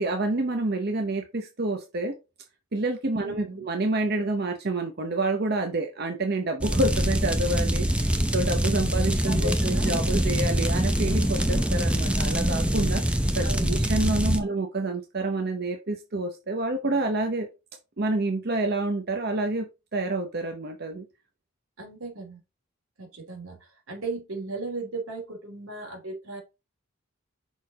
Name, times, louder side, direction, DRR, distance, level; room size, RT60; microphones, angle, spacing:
voice 1, 0.0-2.1 2.7-17.5 18.0-21.0, right 2 dB, 50° right, 4 dB, 0.8 m, -28 dB
voice 2, 3.2-3.7 9.3-10.2 12.0-12.2 13.4-13.8 14.4-14.5 21.8-22.4 23.0-26.4, right 3 dB, 90° right, 2 dB, 3.0 m, -37 dB
sound 1, 6.6-14.4, equal, 5° right, 0.6 m, -24 dB
6.0 x 4.3 x 4.1 m, 0.27 s
head